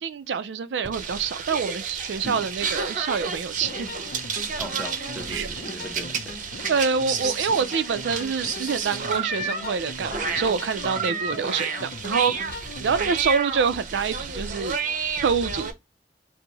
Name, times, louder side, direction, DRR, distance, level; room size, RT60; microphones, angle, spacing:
voice 1, 0.0-4.1 5.3-5.5 6.7-14.8 15.2-15.7, right 5 dB, 80° right, 0.4 m, -26 dB
sound 1, 0.8-15.7, right 5 dB, 50° right, 0.7 m, -31 dB
sound 2, 3.6-13.2, left 2 dB, 60° left, 0.6 m, -40 dB
voice 2, 4.6-6.4, equal, ahead, 0.8 m, -38 dB
4.5 x 2.0 x 3.9 m
head